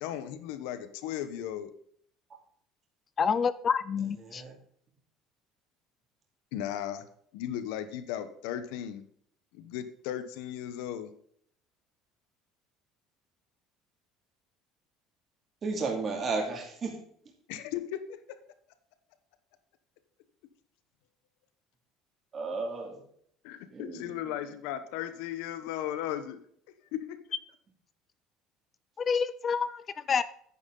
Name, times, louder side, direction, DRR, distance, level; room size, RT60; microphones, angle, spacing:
voice 1, 0.0-1.7 6.5-7.1 7.3-9.0 9.5-11.1 17.5-18.4 23.4-26.4 26.9-27.2, left 11 dB, 90° left, 11 dB, 1.0 m, -36 dB
voice 2, 3.2-4.4 29.0-29.8 30.1-30.2, left 6 dB, 25° left, 16 dB, 0.4 m, -28 dB
voice 3, 4.2-4.5 15.6-17.0 22.3-23.0 23.7-24.2, right 4 dB, 25° right, 0 dB, 2.4 m, -33 dB
10.0 x 9.7 x 3.9 m, 0.63 s
cardioid pair, 160°, 0 cm